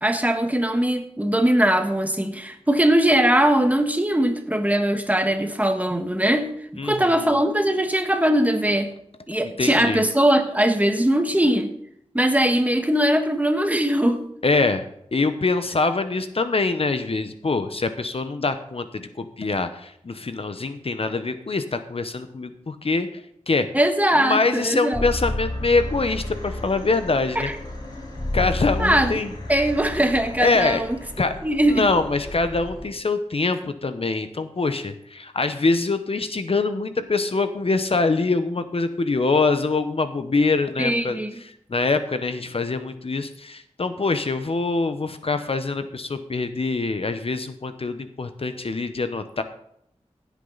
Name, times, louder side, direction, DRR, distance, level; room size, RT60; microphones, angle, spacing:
voice 1, 0.0-6.5 6.8-8.9 9.3-11.7 12.1-14.2 23.7-25.0 27.3-27.5 28.8-29.2 29.5-31.0 31.4-31.9 40.8-41.3, right 1 dB, 10° right, 6 dB, 1.4 m, -20 dB
voice 2, 6.8-7.2 9.4-10.0 14.4-14.8 15.1-23.1 23.5-23.7 24.1-27.5 28.3-29.3 30.4-30.8 31.2-31.3 31.7-49.4, left 3 dB, 55° left, 9 dB, 0.9 m, -24 dB
sound 1, 24.9-32.9, left 1 dB, 35° left, 5.9 m, -32 dB
16.0 x 8.4 x 4.0 m, 0.73 s
wide cardioid pair, 75°, 12 cm